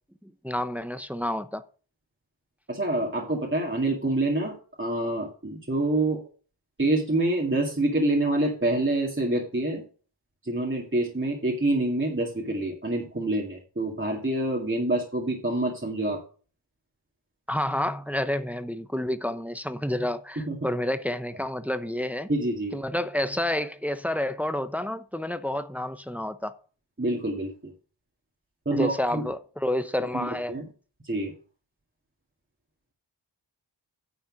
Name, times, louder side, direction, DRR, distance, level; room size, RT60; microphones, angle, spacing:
voice 1, 0.2-1.6 17.5-22.3 22.7-26.5 28.7-30.6, left 1 dB, 5° right, 0.8 m, -29 dB
voice 2, 2.7-6.2 6.8-9.8 10.4-16.2 20.5-20.6 22.3-22.8 27.0-27.7 28.7-29.2 30.1-30.6 31.0-31.3, right 2 dB, 25° right, 2.1 m, -26 dB
9.7 x 4.3 x 7.5 m
cardioid pair, 40°, 46 cm